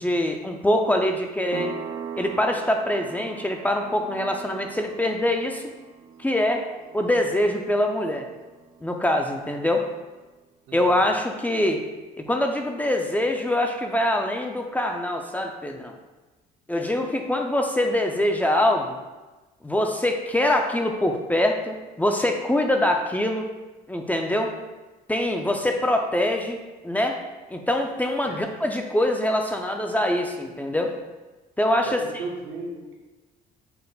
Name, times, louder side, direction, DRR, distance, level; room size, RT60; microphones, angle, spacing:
voice 1, 0.0-1.8 2.2-5.6 6.2-6.7 6.9-8.3 8.8-9.9 10.7-11.8 12.3-16.0 16.7-19.0 19.6-23.5 23.9-24.5 25.1-26.6 26.8-27.2 27.5-30.9 31.6-32.0, left 1 dB, 10° left, 3 dB, 0.4 m, -24 dB
sound 1, 1.5-9.9, right 7 dB, 60° right, 0.4 m, -41 dB
voice 2, 31.8-32.9, right 2 dB, 80° right, -3 dB, 0.9 m, -36 dB
5.5 x 2.0 x 3.8 m, 1.2 s
cardioid pair, 110°, 17 cm